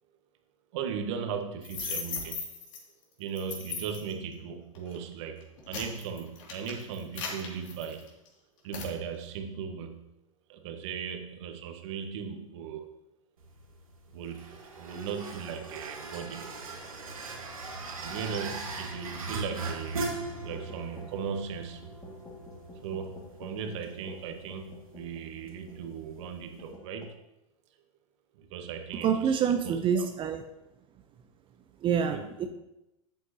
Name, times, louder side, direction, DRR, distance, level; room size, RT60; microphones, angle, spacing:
voice 1, 0.7-2.4 3.2-5.4 5.7-8.1 8.6-10.1 10.5-12.9 14.1-16.5 18.0-22.0 22.8-27.2 28.3-29.3 29.6-30.0 32.1-32.5, right 6 dB, 55° right, 5 dB, 1.6 m, -38 dB
sound 1, 1.6-2.8 3.4-4.1 4.8-5.0 5.4-8.3 8.7-8.9, left 5 dB, 65° left, 2.7 m, -37 dB
sound 2, 13.4-26.7, right 3 dB, 85° right, 2.0 m, -40 dB
sound 3, 20.5-25.9 26.2-26.3 26.6-27.0, left 2 dB, 20° left, 2.2 m, -49 dB
voice 2, 29.0-30.4 31.8-32.5, right 7 dB, 30° right, 6 dB, 0.8 m, -27 dB
12.5 x 8.1 x 3.0 m, 0.90 s
hypercardioid pair, 95°, 18 cm